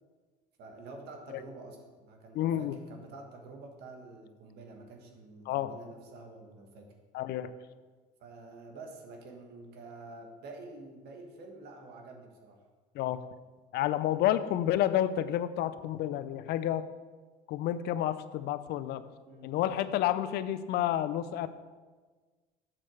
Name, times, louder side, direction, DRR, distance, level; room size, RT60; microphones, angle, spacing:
voice 1, 0.6-6.9 8.2-12.6 19.2-19.5, right 3 dB, 70° right, 3 dB, 1.4 m, -48 dB
voice 2, 2.3-2.8 5.5-5.7 7.1-7.5 12.9-13.2 13.7-16.9 17.5-19.1 19.4-21.5, left 12 dB, 70° left, 13 dB, 0.5 m, -30 dB
7.6 x 4.4 x 6.3 m, 1.4 s
cardioid pair, 95°, 17 cm